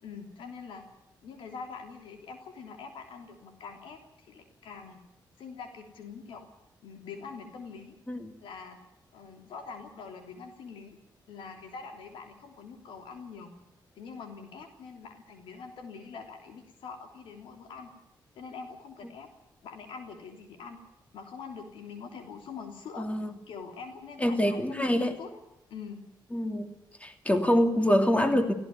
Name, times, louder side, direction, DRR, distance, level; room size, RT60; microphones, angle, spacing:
voice 1, 0.0-0.9 1.2-5.0 5.4-6.5 6.8-8.0 8.4-8.8 9.1-11.0 11.3-13.5 14.0-17.9 18.3-19.3 19.6-20.8 21.1-23.1 23.5-25.3 25.7-26.0, left 5 dB, 90° left, 6 dB, 3.2 m, -44 dB
voice 2, 23.0-23.3 24.2-25.1 26.3-26.7 27.0-28.5, equal, 15° left, 7 dB, 2.9 m, -25 dB
17.5 x 16.0 x 9.6 m, 0.85 s
cardioid pair, 75°, 8 cm